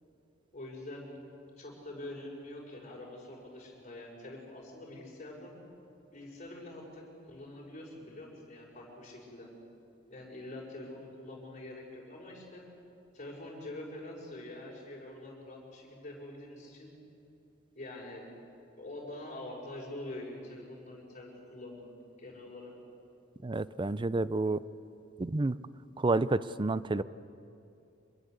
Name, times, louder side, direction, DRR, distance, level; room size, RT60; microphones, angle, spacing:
voice 1, 0.5-1.1 1.6-5.6 6.1-9.5 10.1-12.6 13.1-16.9 17.7-18.2 18.8-21.9 22.2-22.7, left 1 dB, 40° left, -2 dB, 6.4 m, -45 dB
voice 2, 23.4-24.6 25.2-25.6 26.0-27.0, right 2 dB, 25° right, 16 dB, 0.5 m, -29 dB
25.5 x 21.5 x 8.1 m, 2.6 s
head